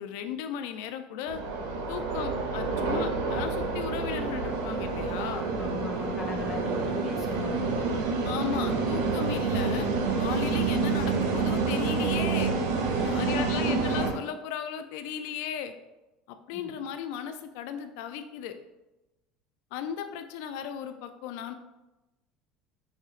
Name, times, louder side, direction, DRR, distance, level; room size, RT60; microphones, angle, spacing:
voice 1, 0.0-1.4 1.9-5.5 8.2-9.9 10.2-12.5 13.0-15.7 16.5-18.5 19.7-21.5, left 8 dB, 75° left, 8 dB, 0.3 m, -36 dB
sound 1, 1.3-14.1, right 4 dB, 85° right, 0.4 m, -28 dB
voice 2, 5.6-7.6 13.0-13.6 16.5-16.6, left 3 dB, 30° left, 2 dB, 0.6 m, -38 dB
4.2 x 2.7 x 2.4 m, 1.0 s
supercardioid pair, 115°, 0 cm